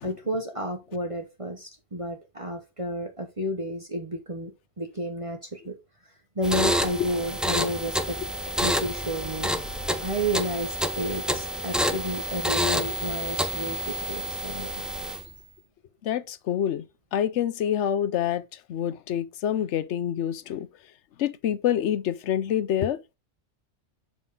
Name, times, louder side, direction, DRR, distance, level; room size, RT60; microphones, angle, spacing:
voice 1, 0.0-5.8 6.4-8.2 8.6-9.5 10.0-14.7, equal, 30° right, 1.1 m, -31 dB
sound 1, 6.4-15.4, equal, ahead, 0.4 m, -28 dB
voice 2, 16.0-16.8 17.1-18.4 18.7-20.7 21.2-23.2, left 10 dB, 80° left, 1.0 m, -27 dB
7.3 x 5.0 x 3.8 m
omnidirectional pair, 1.2 m